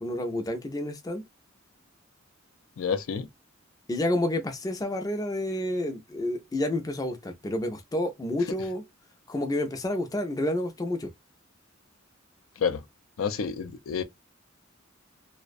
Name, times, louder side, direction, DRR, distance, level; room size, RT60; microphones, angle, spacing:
voice 1, 0.0-1.2 3.9-8.8 9.3-11.1, left 1 dB, 20° left, 0.4 m, -29 dB
voice 2, 2.8-3.3 12.6-12.8 13.2-14.0, left 6 dB, 90° left, 0.4 m, -29 dB
2.4 x 2.1 x 2.5 m
head